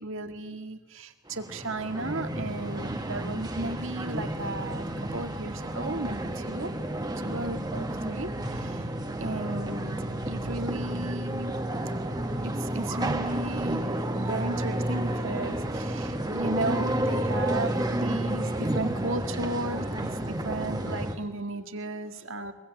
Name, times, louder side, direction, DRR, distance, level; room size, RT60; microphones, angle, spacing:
voice 1, 0.0-4.8 5.1-6.7 7.2-8.9 9.2-9.9 10.3-11.8 12.4-13.9 14.2-22.5, right 2 dB, 60° right, 7 dB, 2.1 m, -35 dB
sound 1, 1.3-21.1, right 1 dB, 15° right, 1.6 m, -31 dB
23.0 x 22.5 x 9.1 m, 1.1 s
head